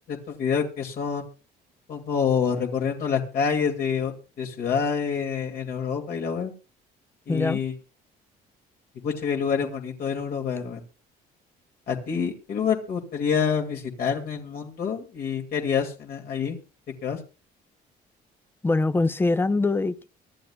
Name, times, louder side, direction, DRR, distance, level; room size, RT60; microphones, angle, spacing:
voice 1, 0.1-1.2 1.9-6.5 7.3-7.7 9.0-10.8 11.9-16.6 17.0-17.2, left 6 dB, 60° left, 2.2 m, -27 dB
voice 2, 7.3-7.6 18.6-20.1, left 3 dB, 15° left, 0.6 m, -23 dB
24.5 x 11.0 x 2.3 m
cardioid pair, 110°, 17 cm